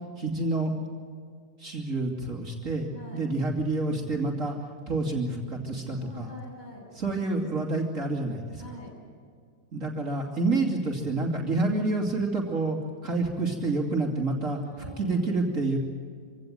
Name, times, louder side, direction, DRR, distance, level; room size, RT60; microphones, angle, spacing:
voice 1, 0.2-0.7 1.6-4.6 4.9-6.3 7.0-8.6 9.7-14.6 15.0-15.8, right 2 dB, 50° right, 0 dB, 3.0 m, -28 dB
voice 2, 6.0-6.8 8.6-8.9 14.5-15.5, equal, 25° left, -3 dB, 8.3 m, -45 dB
25.5 x 17.5 x 9.3 m, 2.3 s
omnidirectional pair, 1.7 m